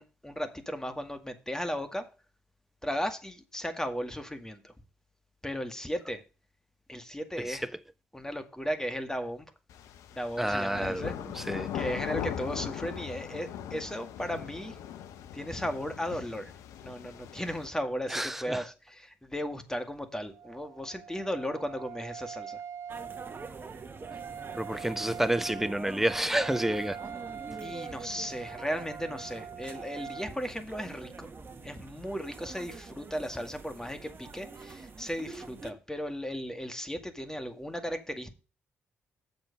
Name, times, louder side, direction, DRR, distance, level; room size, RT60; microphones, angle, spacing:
voice 1, 0.0-2.1 2.8-4.7 5.4-6.2 6.9-7.7 8.1-9.5 10.1-11.1 11.7-14.8 15.3-16.5 16.8-22.6 27.6-31.3 31.6-38.3, equal, 10° left, 2.0 m, -36 dB
sound 1, 9.7-17.7, left 9 dB, 75° left, 0.8 m, -39 dB
voice 2, 10.4-11.7 18.1-18.6 24.6-27.0, right 1 dB, 5° right, 1.0 m, -29 dB
Wind instrument woodwind instrument, 20.3-30.3, right 7 dB, 65° right, 0.8 m, -43 dB
sound 2, 22.9-35.7, right 4 dB, 40° right, 1.4 m, -45 dB
7.6 x 6.9 x 5.3 m
hypercardioid pair, 45°, 5 cm